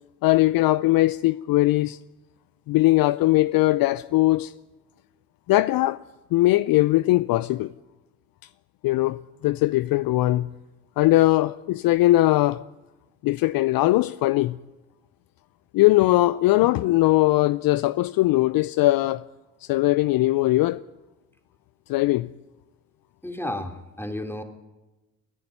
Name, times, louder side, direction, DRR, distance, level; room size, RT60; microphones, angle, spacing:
voice 1, 0.2-2.0 2.7-4.5 5.5-6.0 6.3-7.7 8.8-10.5 11.0-12.6 13.2-14.6 15.7-19.2 19.6-20.8 21.9-22.3, left 17 dB, 55° left, 0.7 m, -20 dB
voice 2, 23.2-24.4, left 1 dB, 5° left, 3.5 m, -32 dB
29.0 x 11.0 x 9.6 m
hypercardioid pair, 50°, 42 cm